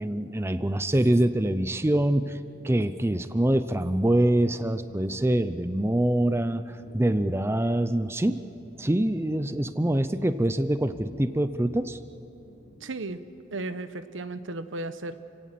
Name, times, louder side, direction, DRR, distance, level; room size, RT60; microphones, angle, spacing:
voice 1, 0.0-2.4 2.6-8.4 8.8-12.0, right 1 dB, 15° right, 11 dB, 0.5 m, -25 dB
sound 1, 5.5-6.3 6.8-7.1 7.7-9.8 10.1-13.0, left 1 dB, 70° left, 3.2 m, -51 dB
voice 2, 12.8-13.2 13.5-15.2, right 2 dB, 80° right, 11 dB, 1.0 m, -35 dB
29.5 x 17.0 x 7.6 m, 3.0 s
head